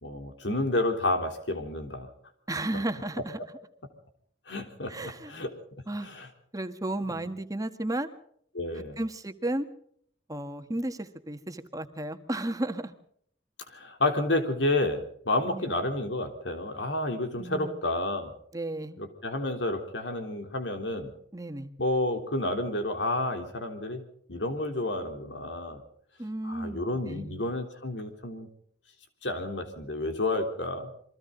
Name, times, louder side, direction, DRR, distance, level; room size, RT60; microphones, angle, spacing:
voice 1, 0.0-2.1 2.7-2.8 4.5-5.5 6.0-6.3 7.1-7.3 8.5-9.0 13.7-18.3 19.0-21.1 21.8-24.0 24.3-25.8 26.4-28.5 29.2-30.9, left 2 dB, 90° left, 6 dB, 3.6 m, -30 dB
voice 2, 2.5-3.4 4.9-5.3 5.9-6.1 6.5-8.1 8.8-9.7 10.3-12.9 15.5-15.7 17.4-17.8 18.5-19.0 21.3-21.7 26.2-27.4, right 1 dB, 20° right, 7 dB, 1.6 m, -33 dB
28.5 x 23.0 x 4.0 m, 0.65 s
head